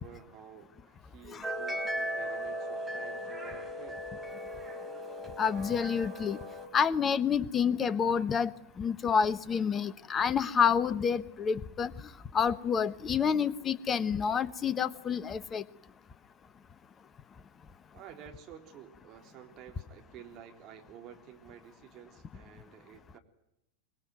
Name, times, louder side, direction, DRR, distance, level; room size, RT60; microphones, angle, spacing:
voice 1, 0.0-4.0 17.9-23.2, right 9 dB, 35° right, 4 dB, 3.5 m, -51 dB
sound 1, 1.4-6.7, equal, 5° right, 4.2 m, -37 dB
voice 2, 5.4-6.4 6.7-8.5 8.8-11.9 12.3-15.6, left 7 dB, 20° left, 17 dB, 1.1 m, -28 dB
24.5 x 21.5 x 9.4 m, 0.81 s
figure-of-eight pair, 90°, 0 cm